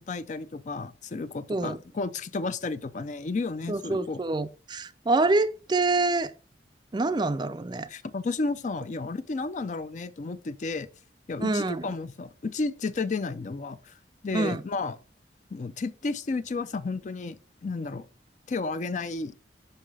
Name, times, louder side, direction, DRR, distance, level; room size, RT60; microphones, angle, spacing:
voice 1, 0.0-4.2 7.9-10.9 11.3-13.9 14.2-15.0 15.5-17.4 17.6-18.1 18.5-19.3, left 3 dB, 45° left, 0.4 m, -32 dB
voice 2, 3.7-6.3 6.9-7.9 11.4-11.9 14.3-14.6, right 2 dB, 25° right, 0.4 m, -26 dB
5.7 x 5.4 x 4.8 m
head